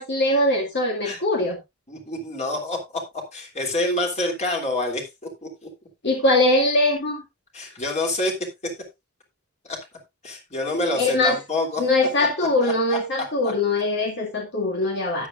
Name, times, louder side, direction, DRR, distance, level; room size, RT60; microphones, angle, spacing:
voice 1, 0.0-1.6 6.0-7.2 11.0-11.4 11.8-15.3, left 2 dB, 50° left, 1 dB, 2.2 m, -22 dB
voice 2, 1.9-3.0 3.3-5.7 7.5-8.4 8.6-8.7 9.6-9.8 10.2-11.8 12.4-13.0, left 2 dB, 30° left, 2 dB, 3.0 m, -27 dB
12.5 x 9.5 x 2.5 m, 0.21 s
head